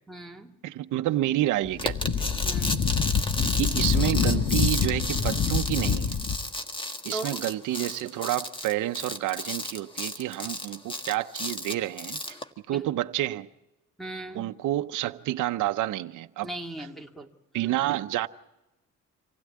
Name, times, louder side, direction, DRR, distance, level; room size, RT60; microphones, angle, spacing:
voice 1, 0.1-0.5 2.4-2.9 7.1-7.4 12.7-12.8 14.0-14.5 16.4-17.3, right 1 dB, ahead, 2.2 m, -38 dB
voice 2, 0.6-2.3 3.6-6.1 7.0-12.4 12.7-13.5 14.3-16.5 17.5-18.3, right 15 dB, 80° right, 0.8 m, -29 dB
Wind, 1.6-6.5, left 6 dB, 45° left, 1.2 m, -26 dB
sound 1, 1.8-12.4, left 1 dB, 15° left, 1.6 m, -33 dB
26.5 x 16.5 x 8.4 m
cardioid pair, 90°, 30 cm